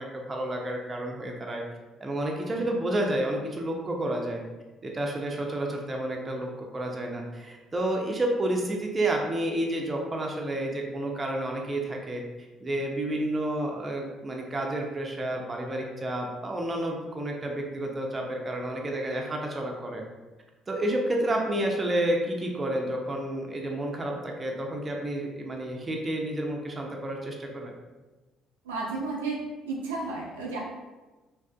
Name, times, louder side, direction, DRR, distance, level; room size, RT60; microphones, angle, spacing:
voice 1, 0.0-1.6 2.0-4.4 4.8-12.2 12.6-20.0 20.7-27.7, right 1 dB, 30° right, 0 dB, 0.5 m, -30 dB
voice 2, 28.6-29.4 29.6-30.6, right 3 dB, 90° right, -3 dB, 0.4 m, -32 dB
2.5 x 2.4 x 2.3 m, 1.2 s
hypercardioid pair, 55°, 0 cm